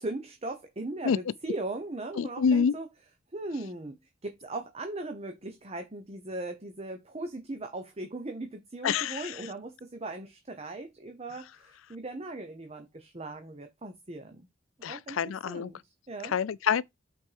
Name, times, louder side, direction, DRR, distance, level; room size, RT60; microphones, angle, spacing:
voice 1, 0.0-2.9 3.3-14.5 14.9-16.4, right 2 dB, 30° right, 0.9 m, -38 dB
voice 2, 2.2-2.7 8.8-9.2 14.8-15.7 16.3-16.8, left 6 dB, 80° left, 0.4 m, -26 dB
5.9 x 4.4 x 4.7 m
head